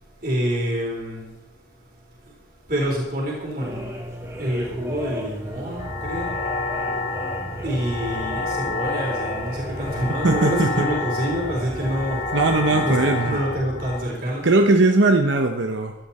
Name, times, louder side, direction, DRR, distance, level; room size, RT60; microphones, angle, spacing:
voice 1, 0.2-1.3 2.3-2.4 2.7-3.9 4.4-6.4 7.6-12.3 12.8-14.9, equal, 50° right, -4 dB, 4.0 m, -27 dB
sound 1, 3.6-13.2, equal, 15° right, 2.5 m, -35 dB
sound 2, 5.8-14.0, left 3 dB, 40° left, 2.0 m, -29 dB
voice 2, 10.2-10.9 12.3-13.4 14.4-15.9, right 2 dB, 75° right, 5 dB, 0.9 m, -19 dB
16.0 x 12.5 x 4.3 m, 0.96 s
head